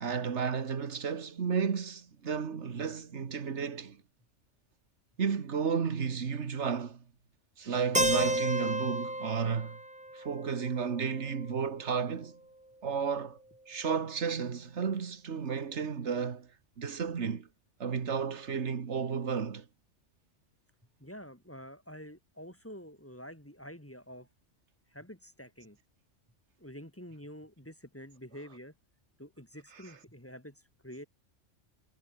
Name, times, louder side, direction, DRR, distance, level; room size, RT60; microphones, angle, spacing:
voice 1, 0.0-4.0 5.2-7.0 7.6-9.8 10.2-12.3 12.8-13.4 13.7-16.5 16.8-17.5 17.8-19.7, right 6 dB, 70° right, 1.8 m, -32 dB
Keyboard (musical), 7.9-11.8, right 1 dB, 5° right, 1.0 m, -33 dB
voice 2, 21.0-24.3 24.9-25.8 26.6-28.7 29.2-31.1, equal, 10° left, 2.9 m, -48 dB
omnidirectional pair, 1.2 m